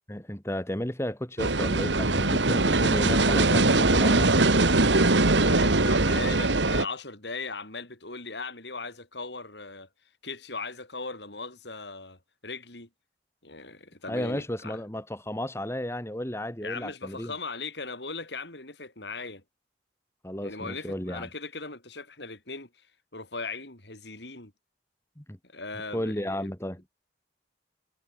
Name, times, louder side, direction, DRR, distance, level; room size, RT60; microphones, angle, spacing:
voice 1, 0.1-4.3 14.1-17.3 20.2-21.3 25.2-25.4 25.9-26.8, left 1 dB, 15° left, 2.5 m, -33 dB
sound 1, 1.4-6.8, right 2 dB, 85° right, 2.2 m, -22 dB
voice 2, 5.3-9.9 10.2-12.9 13.4-14.8 16.6-19.4 20.4-22.7 23.1-24.5 25.4-26.5, left 3 dB, 70° left, 7.1 m, -38 dB
head